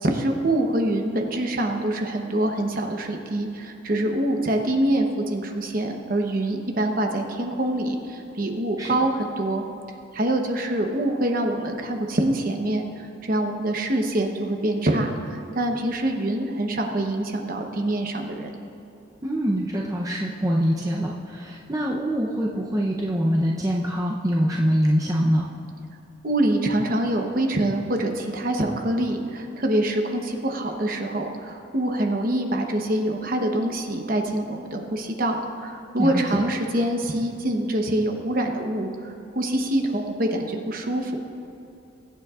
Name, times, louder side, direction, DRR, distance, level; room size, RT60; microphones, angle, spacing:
voice 1, 0.0-9.6 10.1-18.5 26.2-41.2, right 1 dB, 45° right, 3 dB, 0.9 m, -25 dB
voice 2, 19.2-25.5 36.0-36.4, equal, 15° right, -3 dB, 0.6 m, -24 dB
21.5 x 8.5 x 2.4 m, 2.8 s
head